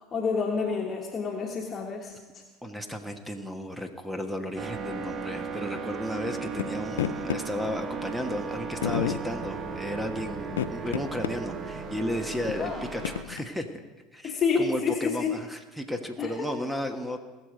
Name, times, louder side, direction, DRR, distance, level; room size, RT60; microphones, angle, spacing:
voice 1, 0.1-2.2 12.6-12.8 14.2-15.3 16.2-16.5, left 5 dB, 35° left, 1 dB, 1.4 m, -28 dB
voice 2, 2.6-13.8 14.1-17.2, equal, 5° right, 6 dB, 1.2 m, -34 dB
sound 1, 4.6-13.2, right 5 dB, 35° right, 1.0 m, -36 dB
sound 2, 6.6-6.7 7.0-7.4 8.3-8.4 8.8-9.2 10.5-11.3 11.8-11.9 12.5-13.5, left 11 dB, 85° left, 0.3 m, -30 dB
19.5 x 6.7 x 5.2 m, 1.2 s
hypercardioid pair, 80°, 0 cm